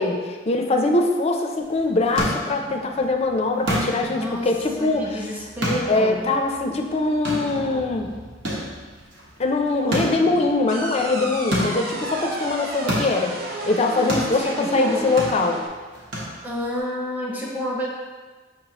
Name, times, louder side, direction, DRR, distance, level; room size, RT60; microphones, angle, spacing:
voice 1, 0.0-5.3 5.9-8.1 9.4-13.4 13.6-15.6, left 2 dB, 35° left, 3 dB, 0.4 m, -22 dB
sound 1, 1.6-16.8, equal, 75° right, 1.1 m, -32 dB
voice 2, 4.2-4.5 4.8-6.3 14.3-15.1 16.4-17.9, equal, 10° right, -3 dB, 0.7 m, -29 dB
sound 2, 10.7-15.7, right 1 dB, 55° right, 0.6 m, -32 dB
5.8 x 3.1 x 2.9 m, 1.4 s
head